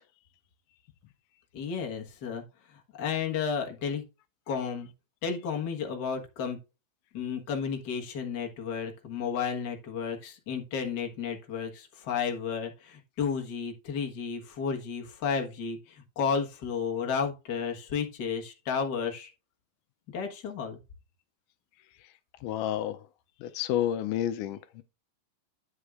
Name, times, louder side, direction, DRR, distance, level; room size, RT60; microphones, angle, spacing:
voice 1, 1.5-2.4 3.0-4.0 4.5-4.9 5.2-6.6 7.1-19.3 20.1-20.8, left 6 dB, 45° left, 1.4 m, -32 dB
voice 2, 22.4-23.0 23.4-24.8, left 11 dB, 80° left, 2.0 m, -30 dB
9.4 x 8.1 x 2.5 m
omnidirectional pair, 3.8 m